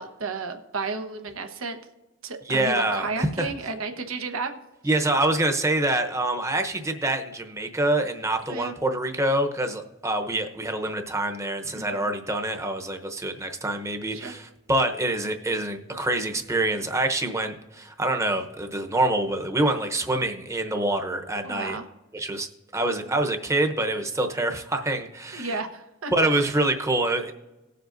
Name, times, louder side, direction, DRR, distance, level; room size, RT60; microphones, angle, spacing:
voice 1, 0.0-1.8 2.2-4.6 8.5-8.7 11.7-12.1 14.1-14.3 21.4-21.9 25.3-26.1 26.4-26.5, right 4 dB, 85° right, 6 dB, 1.1 m, -33 dB
voice 2, 2.5-3.5 4.8-21.8 22.1-25.5 26.1-27.3, right 1 dB, 15° right, 5 dB, 0.9 m, -26 dB
19.0 x 7.7 x 2.6 m, 1.1 s
head